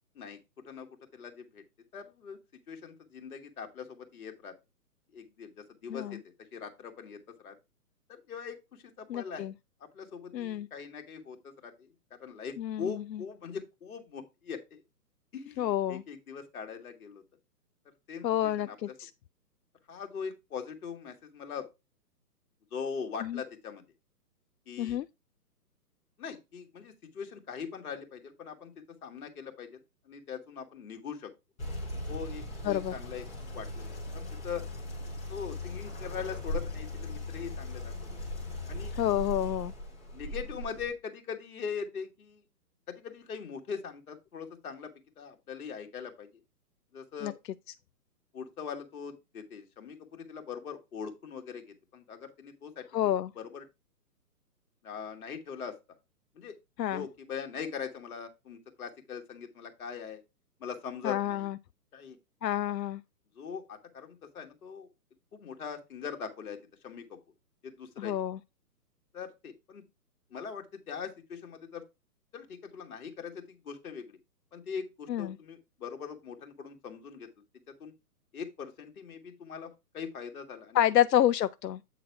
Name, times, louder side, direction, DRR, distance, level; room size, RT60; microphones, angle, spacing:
voice 1, 1.1-1.6 1.9-2.4 2.7-4.5 5.1-5.5 5.8-6.2 6.5-7.6 8.1-9.5 9.9-14.8 15.3-17.2 18.1-18.3 18.6-18.9 19.9-21.7 22.7-23.8 24.7-25.0 26.2-28.7 29.0-29.8 30.1-31.3 32.1-33.3 33.5-34.6 35.3-38.2 38.7-38.9 40.1-42.4 42.9-44.9 45.2-46.3 46.9-47.3 48.3-52.9 53.4-53.6 54.8-55.8 56.4-56.6 56.9-60.2 60.6-61.5 61.9-62.2 63.4-64.9 65.3-67.2 67.6-68.1 69.1-69.8 70.3-71.8 72.3-74.2 74.5-77.3 77.8-77.9 78.3-80.8, left 6 dB, 60° left, 1.9 m, -41 dB
voice 2, 9.1-9.5 10.3-10.7 12.6-13.0 15.6-16.0 18.2-19.1 23.2-23.4 24.8-25.1 32.6-32.9 39.0-39.7 47.2-47.3 52.9-53.3 56.8-57.0 61.0-61.6 62.4-63.0 68.0-68.4 75.1-75.4 80.7-81.8, left 11 dB, 90° left, 0.5 m, -28 dB
sound 1, 31.6-40.9, left 1 dB, 5° left, 0.5 m, -38 dB
8.3 x 3.9 x 4.6 m
hypercardioid pair, 145°, 48 cm